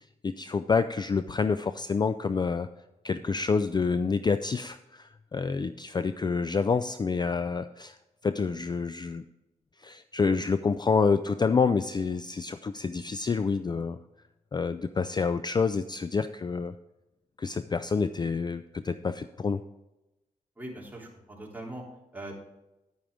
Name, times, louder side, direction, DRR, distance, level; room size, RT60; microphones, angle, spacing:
voice 1, 0.0-2.7 3.0-9.2 9.8-14.0 14.5-16.7 17.4-19.6, left 5 dB, 30° left, 12 dB, 0.4 m, -28 dB
voice 2, 20.6-21.8 22.1-22.3, right 1 dB, 10° right, -3 dB, 3.3 m, -41 dB
10.5 x 9.2 x 3.6 m, 0.99 s
cardioid pair, 70°, 14 cm